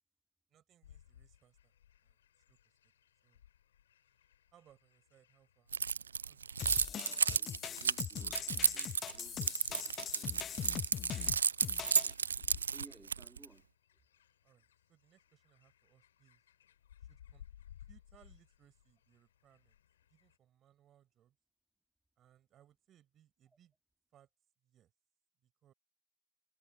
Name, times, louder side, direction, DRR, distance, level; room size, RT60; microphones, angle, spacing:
voice 1, 0.5-1.7 2.0-2.2 2.5-2.7 3.2-3.4 4.5-5.7 6.2-6.7 14.4-16.4 17.0-17.4 17.9-19.8 20.1-21.4 22.2-23.7 24.1-24.3 24.6-24.9 25.4-25.7, right 11 dB, 30° right, 6.7 m, -68 dB
sound 1, 0.8-20.4, left 10 dB, 60° left, 5.1 m, -60 dB
Keys jangling, 5.7-13.5, right 6 dB, 70° right, 0.4 m, -33 dB
sound 2, 6.6-12.1, left 9 dB, 25° left, 0.7 m, -42 dB
voice 2, 6.9-11.4 12.0-13.7, right 2 dB, 5° right, 2.0 m, -61 dB
figure-of-eight pair, 90°, 0 cm